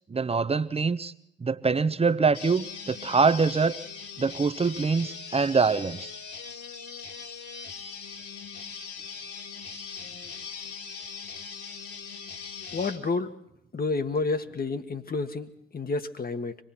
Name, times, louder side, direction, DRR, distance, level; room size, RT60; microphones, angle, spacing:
voice 1, 0.1-1.1 1.4-3.8 4.2-6.1, right 4 dB, 20° right, 13 dB, 1.0 m, -24 dB
sound 1, 2.3-13.0, left 5 dB, 50° left, 2.7 m, -40 dB
voice 2, 12.7-13.3 13.7-16.6, left 3 dB, 30° left, 9 dB, 1.6 m, -30 dB
25.5 x 19.0 x 6.0 m, 0.78 s
figure-of-eight pair, 50°, 29 cm